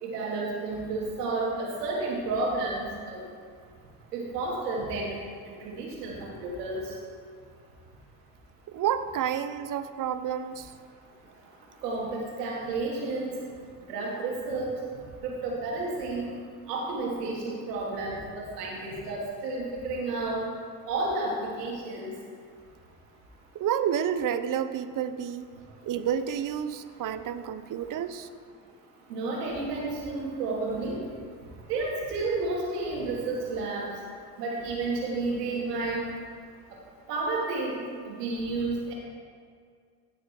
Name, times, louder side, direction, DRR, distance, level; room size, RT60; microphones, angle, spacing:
voice 1, 0.0-3.2 4.1-5.1 5.5-6.8 11.8-13.3 13.9-14.7 15.2-16.3 16.7-20.4 20.9-22.1 29.1-31.0 31.7-33.9 34.4-36.0 37.1-38.9, right 3 dB, 80° right, -3 dB, 3.1 m, -31 dB
voice 2, 8.7-10.7 23.5-25.5 25.8-28.3, right 9 dB, 45° right, 12 dB, 0.9 m, -30 dB
16.5 x 7.5 x 4.8 m, 2.1 s
hypercardioid pair, 65°, 47 cm